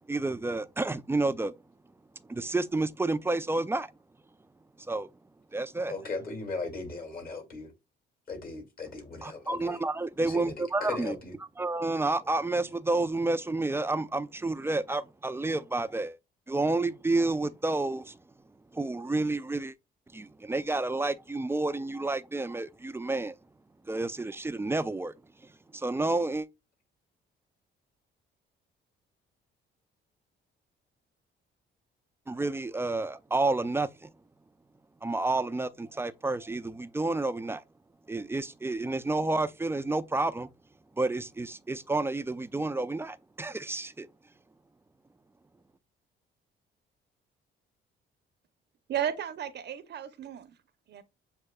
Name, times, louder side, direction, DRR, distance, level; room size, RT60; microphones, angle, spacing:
voice 1, 0.1-1.5 2.3-3.9 4.9-5.1 5.5-5.9 9.2-11.2 11.6-16.2 16.5-18.2 18.7-19.7 20.1-23.3 23.9-25.1 25.7-26.5 32.3-34.1 35.0-37.6 38.1-40.5 41.0-44.1, right 2 dB, 10° right, 0.4 m, -30 dB
voice 2, 5.9-7.7 8.3-9.8 10.2-10.5 10.8-11.3, left 3 dB, 45° left, 2.1 m, -37 dB
voice 3, 48.9-50.6 50.9-51.0, right 9 dB, 60° right, 0.7 m, -34 dB
7.6 x 2.7 x 2.2 m
cardioid pair, 90°, 20 cm